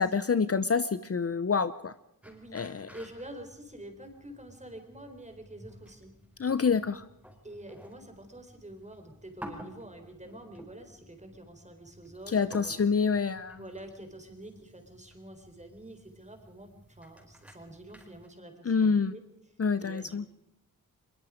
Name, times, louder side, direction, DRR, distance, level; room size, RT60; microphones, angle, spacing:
voice 1, 0.0-1.9 2.5-2.9 6.4-7.0 12.3-13.6 18.6-19.1 19.6-20.3, left 5 dB, 40° left, 13 dB, 0.8 m, -27 dB
sound 1, 2.2-18.3, equal, 5° right, 4.9 m, -52 dB
voice 2, 2.2-2.6 2.9-6.1 7.4-12.8 13.5-19.2 19.8-20.3, right 1 dB, 20° right, 6 dB, 4.2 m, -47 dB
23.0 x 22.0 x 5.1 m, 0.79 s
wide cardioid pair, 90°, 35 cm